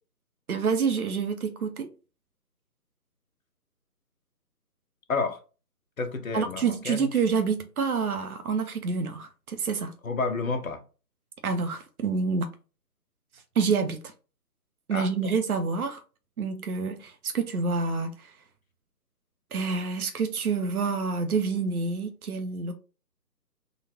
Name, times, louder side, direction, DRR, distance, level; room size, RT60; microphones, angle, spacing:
voice 1, 0.5-1.9 6.3-9.9 11.4-12.5 13.3-14.0 14.9-16.0 16.4-18.4 19.5-22.7, right 5 dB, 60° right, 0.8 m, -28 dB
voice 2, 6.0-7.1 10.0-10.8 14.9-15.1, left 4 dB, 55° left, 0.9 m, -30 dB
3.9 x 2.4 x 4.1 m
figure-of-eight pair, 150°, 50 cm